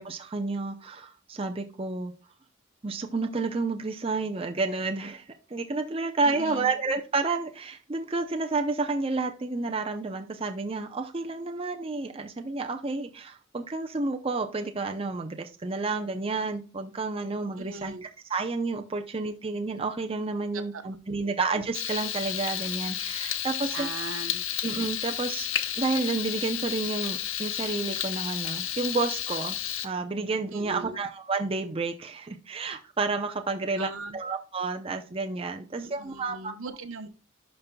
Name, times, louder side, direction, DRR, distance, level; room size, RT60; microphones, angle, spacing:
voice 1, 0.0-2.1 2.8-23.9 24.6-25.5 25.8-29.6 29.8-36.5, right 3 dB, 25° right, 5 dB, 0.6 m, -30 dB
voice 2, 6.2-6.7 17.5-18.0 20.7-20.8 21.2-21.3 23.7-24.4 30.5-31.0 33.7-34.2 35.8-37.1, right 3 dB, 80° right, 10 dB, 0.9 m, -39 dB
Frying (food), 21.7-29.9, left 10 dB, 70° left, 0.7 m, -32 dB
11.0 x 5.4 x 2.2 m, 0.33 s
head